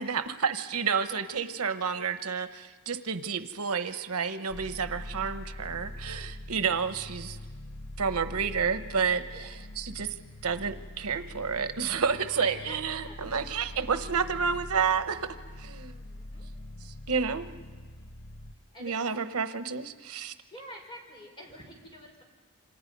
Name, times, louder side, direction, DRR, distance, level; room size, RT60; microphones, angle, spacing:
voice 1, 0.0-7.4 8.0-10.1 10.4-15.3 15.6-15.9 16.8-17.5 18.8-20.3, right 6 dB, 85° right, 10 dB, 1.0 m, -30 dB
sound 1, 4.5-18.5, left 1 dB, 65° left, 0.9 m, -43 dB
voice 2, 12.3-13.8 15.8-16.5 18.7-19.0 20.5-22.2, equal, 20° left, 0 dB, 5.6 m, -47 dB
28.0 x 26.0 x 5.4 m, 1.5 s
head